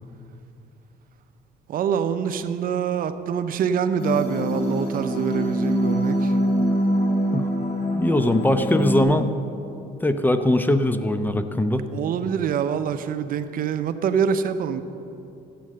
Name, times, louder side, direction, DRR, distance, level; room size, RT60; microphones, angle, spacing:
voice 1, 1.7-6.3 11.9-14.8, right 7 dB, 60° right, 10 dB, 0.7 m, -25 dB
sound 1, 4.0-9.0, equal, 65° left, 2.5 m, -24 dB
voice 2, 7.9-9.3 10.0-11.8, left 1 dB, 10° left, 9 dB, 0.6 m, -21 dB
12.5 x 7.8 x 7.6 m, 2.7 s
cardioid pair, 110°, 17 cm